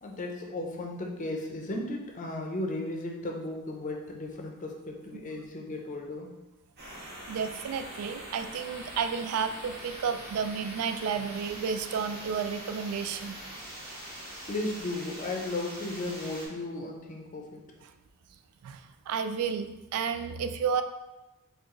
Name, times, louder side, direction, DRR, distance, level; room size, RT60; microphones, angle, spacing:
voice 1, 0.0-6.3 14.5-17.6, left 2 dB, 35° left, 1 dB, 0.5 m, -35 dB
sound 1, 6.8-16.5, right 1 dB, 45° right, 1.4 m, -43 dB
voice 2, 7.3-13.4 18.6-18.8 19.1-20.8, right 6 dB, 90° right, 8 dB, 0.3 m, -31 dB
4.5 x 2.4 x 3.0 m, 1.0 s
head